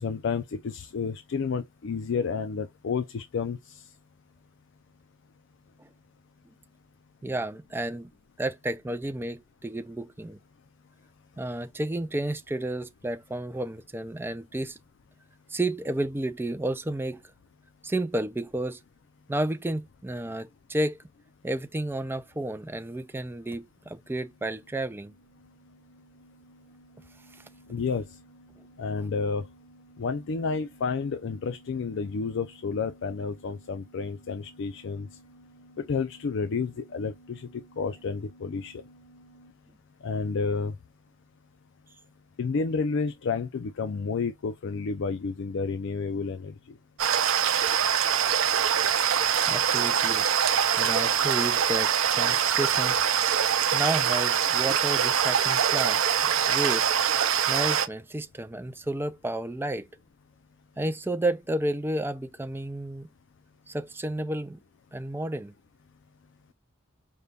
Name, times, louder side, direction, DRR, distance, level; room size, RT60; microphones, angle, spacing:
voice 1, 0.0-3.8 27.7-28.1 28.8-29.4 30.0-35.1 35.8-38.8 40.0-40.7 42.4-46.5, left 5 dB, 65° left, 0.4 m, -30 dB
voice 2, 7.2-8.1 8.4-10.4 11.4-14.8 15.5-17.2 17.8-18.8 19.3-21.0 21.4-25.1 49.5-50.3 50.8-53.1 53.7-56.9 57.5-59.9 60.8-63.1 63.7-64.6 64.9-65.5, right 1 dB, 10° right, 0.4 m, -31 dB
sound 1, 23.3-39.5, right 2 dB, 45° left, 2.1 m, -57 dB
sound 2, 47.0-57.9, right 8 dB, 80° right, 0.6 m, -24 dB
5.3 x 2.3 x 3.3 m
head